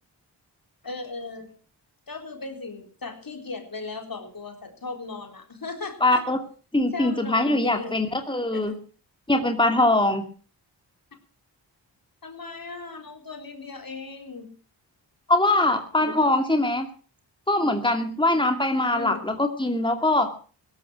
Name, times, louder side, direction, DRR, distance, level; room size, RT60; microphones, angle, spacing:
voice 1, 0.8-1.5 2.1-6.2 6.9-8.1 8.5-8.7 12.2-14.5 16.0-16.3 18.9-19.2, left 3 dB, 50° left, 5 dB, 4.1 m, -37 dB
voice 2, 6.0-6.4 6.7-8.7 9.3-10.2 15.3-16.9 17.5-20.3, left 2 dB, 10° left, 6 dB, 2.6 m, -22 dB
16.5 x 13.0 x 6.2 m, 0.39 s
cardioid pair, 50°, 44 cm